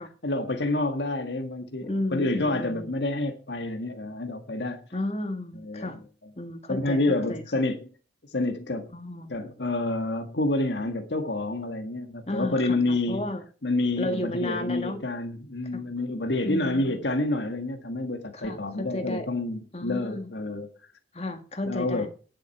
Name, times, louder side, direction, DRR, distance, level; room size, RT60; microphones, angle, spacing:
voice 1, 0.0-4.8 5.5-6.0 6.7-7.9 8.3-8.9 9.3-13.3 13.6-20.7 21.6-22.1, left 2 dB, 75° left, 1.6 m, -28 dB
voice 2, 1.8-2.9 4.9-6.0 6.4-7.4 8.9-9.6 12.3-13.4 14.0-15.0 15.7-15.8 16.4-17.0 18.3-19.3 19.7-20.3 21.1-22.1, left 1 dB, 35° left, 1.8 m, -33 dB
10.5 x 7.8 x 5.8 m
head